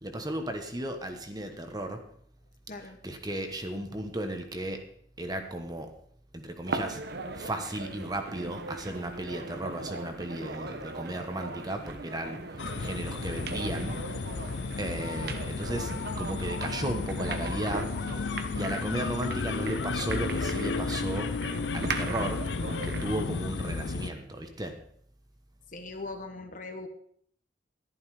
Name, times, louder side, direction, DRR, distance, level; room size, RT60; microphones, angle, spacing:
voice 1, 0.0-2.0 3.0-4.8 5.2-5.9 6.3-7.0 7.3-14.0 14.8-15.9 16.2-17.9 18.2-21.3 21.7-22.4 22.8-24.7, right 1 dB, 20° right, 5 dB, 1.2 m, -35 dB
voice 2, 2.7-3.0 25.7-26.9, left 3 dB, 45° left, 6 dB, 1.4 m, -40 dB
sound 1, 6.7-23.2, right 3 dB, 60° right, 1.0 m, -39 dB
sound 2, 12.6-24.1, left 4 dB, 65° left, 0.6 m, -33 dB
11.5 x 11.0 x 4.9 m, 0.63 s
head